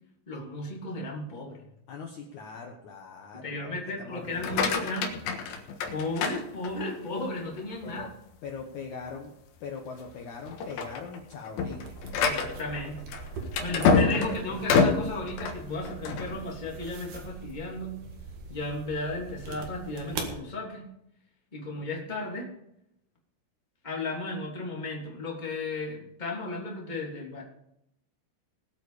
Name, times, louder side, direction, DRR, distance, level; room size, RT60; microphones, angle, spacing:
voice 1, 0.3-1.6 3.3-5.1 5.9-8.1 12.2-13.1 13.6-18.0 18.5-20.9 21.5-22.5 23.8-27.4, left 2 dB, 15° left, -1 dB, 1.9 m, -34 dB
voice 2, 1.9-4.7 7.8-8.1 8.4-9.4 9.6-11.9 13.5-14.6, left 5 dB, 80° left, 1 dB, 1.7 m, -41 dB
sound 1, 4.3-7.1 7.6-8.0 8.5-8.6 9.0-9.2 9.8-10.1 10.5-16.3, left 5 dB, 65° left, 2.9 m, -27 dB
sound 2, 11.8-20.4, right 4 dB, 55° right, 2.9 m, -42 dB
19.5 x 8.3 x 5.0 m, 0.80 s
omnidirectional pair, 5.3 m